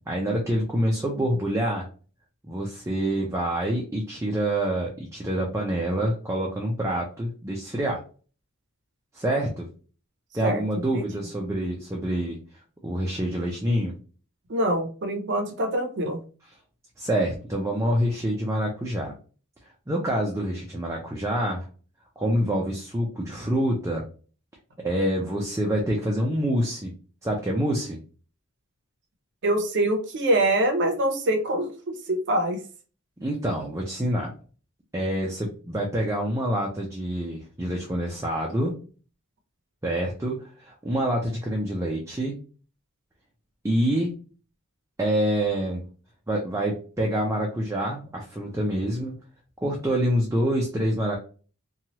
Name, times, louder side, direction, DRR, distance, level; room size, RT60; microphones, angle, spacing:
voice 1, 0.1-1.9 2.4-8.0 9.1-9.7 10.3-12.4 12.8-13.9 17.0-19.1 19.9-21.7 22.2-24.0 24.8-26.9 27.2-28.0 33.2-34.3 34.9-38.7 39.8-42.4 43.6-44.1 45.0-45.8 46.3-49.1 49.6-51.2, right 1 dB, 15° right, -2 dB, 0.5 m, -26 dB
voice 2, 10.4-11.1 14.5-16.2 29.4-32.6, right 1 dB, 55° right, 5 dB, 0.7 m, -25 dB
2.9 x 2.3 x 2.9 m, 0.37 s
head